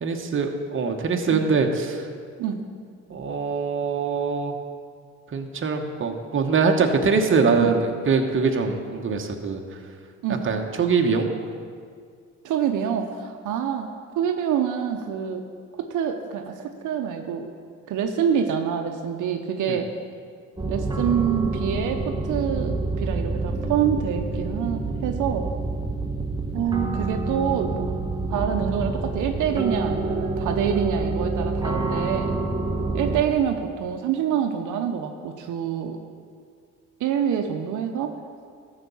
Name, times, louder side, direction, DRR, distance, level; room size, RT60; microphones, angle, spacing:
voice 1, 0.0-2.1 3.1-4.5 5.3-9.6 10.4-11.3 19.7-19.8, right 4 dB, 40° right, 3 dB, 1.1 m, -23 dB
voice 2, 12.4-13.9 14.2-15.4 15.8-17.5 17.9-19.9 20.7-25.5 26.5-27.9 28.3-32.4 32.9-36.0 37.0-38.1, right 8 dB, 80° right, 5 dB, 0.8 m, -26 dB
sound 1, 20.6-33.2, right 2 dB, 15° right, 1.1 m, -27 dB
13.0 x 5.0 x 7.0 m, 2.1 s
cardioid pair, 90°, 30 cm